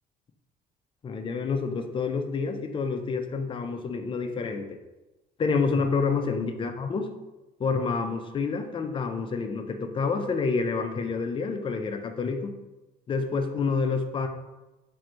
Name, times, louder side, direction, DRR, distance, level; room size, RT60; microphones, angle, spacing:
voice 1, 1.0-4.7 5.4-7.1 7.6-12.5 13.1-14.3, left 4 dB, 30° left, 7 dB, 0.4 m, -28 dB
3.1 x 2.6 x 4.2 m, 1.1 s
cardioid pair, 110°, 17 cm